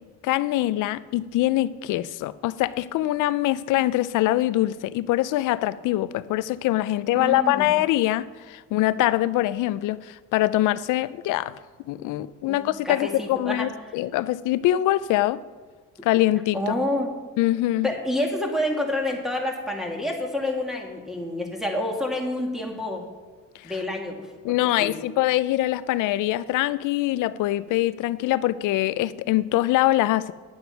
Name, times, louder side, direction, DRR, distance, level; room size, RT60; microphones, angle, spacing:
voice 1, 0.2-11.5 11.9-15.4 16.0-16.7 17.4-17.9 23.6-23.7 24.4-30.3, left 15 dB, 90° left, 0.5 m, -23 dB
voice 2, 7.2-7.7 12.5-12.6 12.8-13.7 16.5-17.1 17.8-23.0 23.6-25.0, left 1 dB, ahead, 2.1 m, -28 dB
9.9 x 7.8 x 5.8 m
cardioid pair, 90°, 30 cm